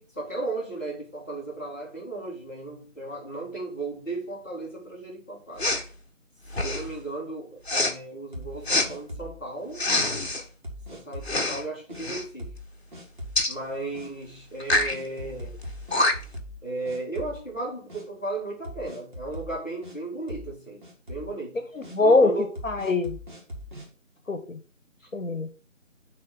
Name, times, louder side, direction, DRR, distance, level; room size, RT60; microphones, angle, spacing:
voice 1, 0.0-5.7 6.6-9.8 10.9-12.5 13.5-15.6 16.6-20.8 21.1-21.6 22.0-22.5 25.0-25.1, right 2 dB, 10° left, 2.0 m, -35 dB
Respiratory sounds, 5.6-5.9 6.5-6.9 7.7-7.9 8.7-8.9 9.7-10.4 11.2-11.6 11.9-12.2 13.4-13.5 14.6-15.0 15.6-15.7 15.9-16.4, left 2 dB, 55° left, 1.2 m, -25 dB
sound 1, 8.3-9.4 9.9-10.0 10.6-11.4 11.9-12.0 12.4-12.7 12.9-13.5 13.9-14.1 14.7-16.6 16.9-17.6 17.9-18.0 18.6-20.0 20.3-20.6 20.8-21.3 21.8-22.0 22.6-23.9, left 1 dB, 40° right, 2.0 m, -40 dB
voice 2, 21.7-22.4 22.6-23.2 24.3-24.6 25.1-25.6, left 3 dB, 80° left, 1.0 m, -22 dB
6.7 x 3.4 x 6.0 m
figure-of-eight pair, 165°, 39 cm